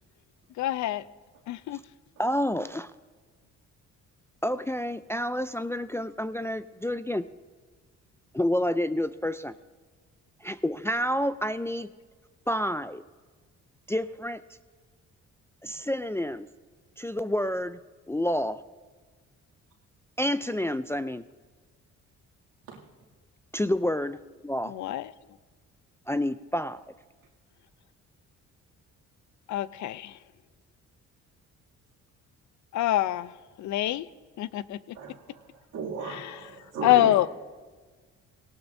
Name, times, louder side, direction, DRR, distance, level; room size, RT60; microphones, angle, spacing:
voice 1, 0.6-1.0 1.5-1.8 24.7-25.1 29.5-30.2 32.7-34.1 34.4-35.0 36.0-36.5 36.8-37.3, left 14 dB, 70° left, 17 dB, 0.5 m, -26 dB
voice 2, 2.2-2.9 4.4-7.2 8.3-9.5 10.4-11.9 12.5-13.0 13.9-14.4 15.6-16.5 17.0-17.8 18.1-18.6 20.2-21.2 23.5-24.2 24.4-24.7 26.1-26.8, left 1 dB, 10° left, 12 dB, 0.3 m, -29 dB
voice 3, 34.9-37.1, right 5 dB, 85° right, -1 dB, 2.5 m, -37 dB
19.0 x 18.0 x 2.6 m, 1.4 s
cardioid pair, 90°, 30 cm